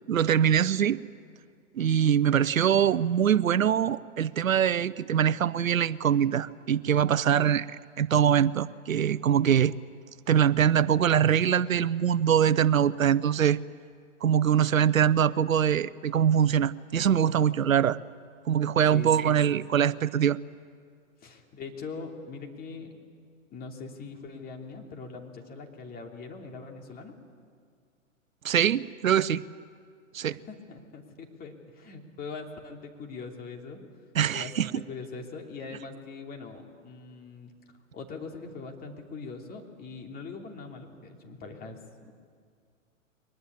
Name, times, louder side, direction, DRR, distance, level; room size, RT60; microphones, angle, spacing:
voice 1, 0.1-1.0 1.8-7.7 8.0-9.7 10.3-13.6 14.2-18.0 18.5-20.4 28.4-29.4 30.1-30.4 34.1-34.7, right 9 dB, 85° right, 18 dB, 0.7 m, -23 dB
voice 2, 18.9-19.6 21.2-22.9 23.5-27.1 30.5-33.8 34.3-37.5 37.9-42.1, left 4 dB, 20° left, 2 dB, 2.9 m, -42 dB
23.0 x 19.5 x 9.7 m, 2.1 s
hypercardioid pair, 120°, 40 cm